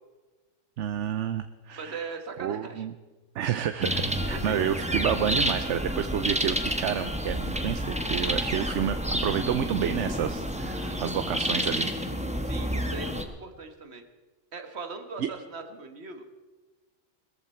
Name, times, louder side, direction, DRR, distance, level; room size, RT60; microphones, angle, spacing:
voice 1, 0.8-2.1 2.4-2.9 3.3-11.9 15.2-15.3, right 9 dB, 75° right, 9 dB, 1.0 m, -30 dB
voice 2, 1.8-2.9 4.3-4.6 10.8-11.2 12.4-14.0 14.5-16.2, right 4 dB, 60° right, 7 dB, 1.7 m, -40 dB
sound 1, 3.8-13.2, equal, 5° right, 1.1 m, -29 dB
21.0 x 14.0 x 4.4 m, 1.3 s
omnidirectional pair, 1.3 m